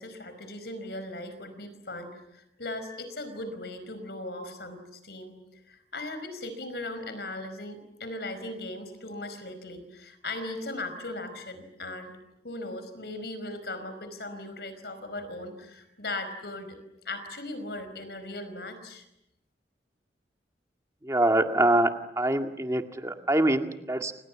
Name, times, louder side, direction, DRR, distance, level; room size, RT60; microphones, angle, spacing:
voice 1, 0.0-5.4 5.7-12.1 12.4-16.8 17.0-19.0, left 2 dB, 65° left, 10 dB, 5.1 m, -38 dB
voice 2, 21.0-21.9 22.2-24.1, right 1 dB, 15° right, 5 dB, 2.0 m, -24 dB
29.5 x 27.0 x 7.4 m, 0.87 s
head